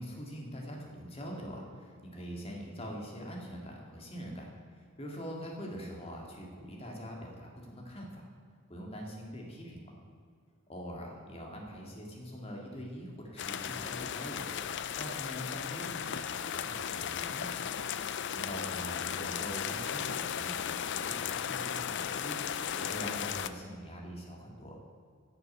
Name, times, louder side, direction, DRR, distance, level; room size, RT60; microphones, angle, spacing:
voice 1, 0.0-8.3 8.7-9.9 10.7-14.5 15.0-17.6 18.3-24.8, equal, 30° left, -1 dB, 2.1 m, -43 dB
sound 1, 13.4-23.5, left 8 dB, 55° left, 0.4 m, -36 dB
10.5 x 6.8 x 8.4 m, 2.1 s
head